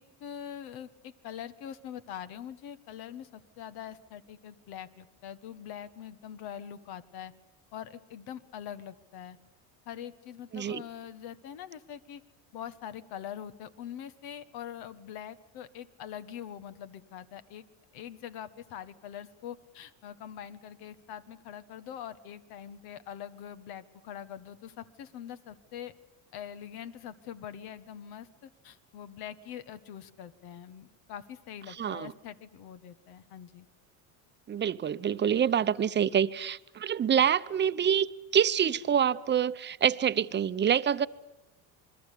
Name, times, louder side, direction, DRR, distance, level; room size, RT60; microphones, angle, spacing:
voice 1, 0.0-7.3 7.7-9.4 9.8-12.2 12.5-17.6 17.9-25.9 26.3-33.7 35.6-35.7, left 9 dB, 70° left, 1.6 m, -43 dB
voice 2, 31.8-32.1 34.5-38.1 38.3-41.1, right 8 dB, 25° right, 0.8 m, -26 dB
28.0 x 21.0 x 8.5 m
cardioid pair, 115°, 39 cm